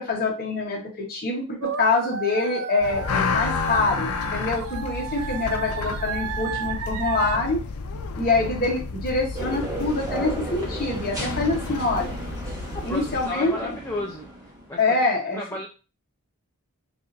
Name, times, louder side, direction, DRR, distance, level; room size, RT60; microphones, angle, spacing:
voice 1, 0.0-7.6 8.2-12.1 12.8-13.7 14.8-15.4, left 3 dB, 40° left, -1 dB, 1.1 m, -25 dB
sound 1, 1.6-7.4, right 7 dB, 80° right, 0.4 m, -32 dB
sound 2, 2.8-13.3, left 4 dB, 85° left, 0.5 m, -31 dB
sound 3, 9.3-14.7, right 1 dB, 15° right, 1.0 m, -34 dB
voice 2, 12.7-14.3 14.7-15.0 15.3-15.7, left 2 dB, 10° left, -3 dB, 0.5 m, -33 dB
4.8 x 2.5 x 2.6 m, 0.33 s
head